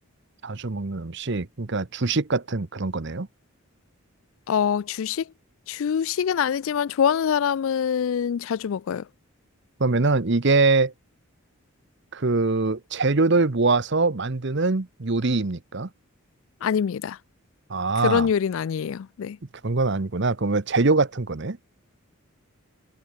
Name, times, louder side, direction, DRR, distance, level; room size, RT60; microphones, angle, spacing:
voice 1, 0.4-3.3 9.8-10.9 12.1-15.9 17.7-18.3 19.6-21.6, right 3 dB, 50° right, 0.9 m, -23 dB
voice 2, 4.5-5.3 5.7-9.1 16.6-17.2 18.0-19.4, left 7 dB, 65° left, 0.3 m, -24 dB
head